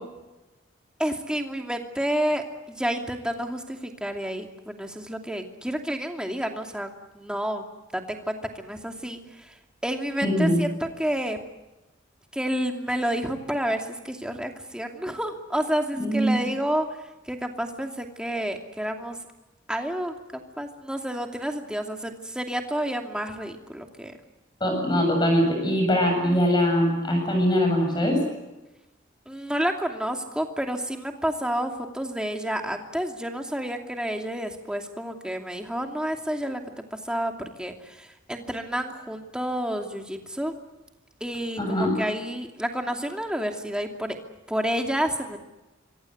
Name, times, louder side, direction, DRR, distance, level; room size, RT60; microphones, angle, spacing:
voice 1, 1.0-6.9 7.1-7.6 7.9-9.5 9.8-11.4 12.3-19.2 19.7-24.1 29.3-40.5 41.2-44.2 44.5-45.4, equal, 5° right, 3 dB, 2.6 m, -30 dB
voice 2, 10.2-10.6 16.0-16.4 24.6-28.2 41.6-42.0, equal, 20° left, 3 dB, 7.8 m, -22 dB
26.5 x 24.0 x 8.0 m, 1.1 s
head